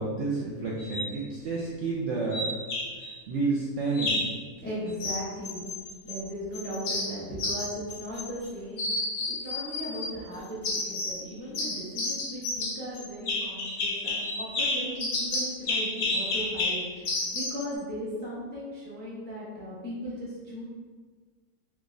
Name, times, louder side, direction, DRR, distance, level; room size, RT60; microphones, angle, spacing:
voice 1, 0.0-2.5 3.0-4.3, right 3 dB, 70° right, -5 dB, 0.7 m, -30 dB
sound 1, 0.8-1.1 2.3-3.1 3.9-4.4 5.0-6.2 6.5-8.5 8.8-10.1 10.6-11.2 11.5-17.6, left 2 dB, 65° left, 0.9 m, -31 dB
voice 2, 4.6-5.6 6.0-8.9 9.3-20.6, equal, 15° left, -8 dB, 0.3 m, -37 dB
3.4 x 3.0 x 2.5 m, 1.5 s
omnidirectional pair, 1.7 m